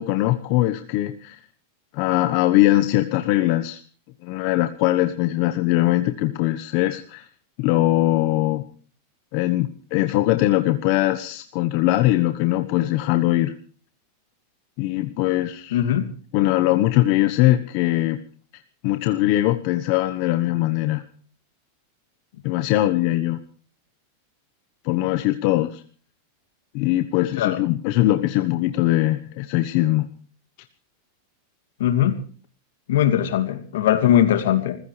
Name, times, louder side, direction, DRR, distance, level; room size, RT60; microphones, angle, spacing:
voice 1, 0.0-1.4 1.9-3.8 4.2-7.2 7.6-8.6 9.3-13.5 14.8-15.8 16.3-18.2 18.8-21.0 22.4-23.4 24.8-25.8 26.7-30.1, left 15 dB, 50° left, 9 dB, 1.2 m, -21 dB
voice 2, 15.7-16.1 27.4-27.6 31.8-32.1 32.9-34.8, left 11 dB, 80° left, 9 dB, 2.6 m, -20 dB
27.0 x 15.5 x 3.4 m, 0.40 s
supercardioid pair, 145°, 0 cm